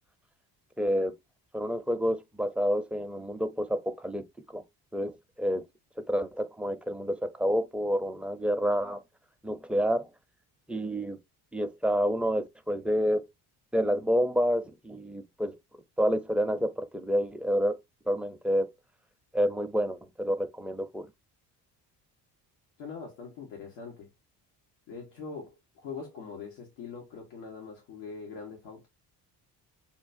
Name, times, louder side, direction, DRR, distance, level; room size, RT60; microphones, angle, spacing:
voice 1, 0.8-1.1 1.5-4.3 4.5-4.6 4.9-5.7 6.0-9.0 9.4-10.1 10.7-11.2 11.5-13.3 13.7-15.6 16.0-17.8 18.1-18.7 19.3-21.1, equal, 5° right, 0.5 m, -28 dB
voice 2, 22.8-24.1 24.9-28.9, left 5 dB, 90° left, 1.2 m, -42 dB
5.7 x 2.3 x 2.6 m
supercardioid pair, 80°, 41 cm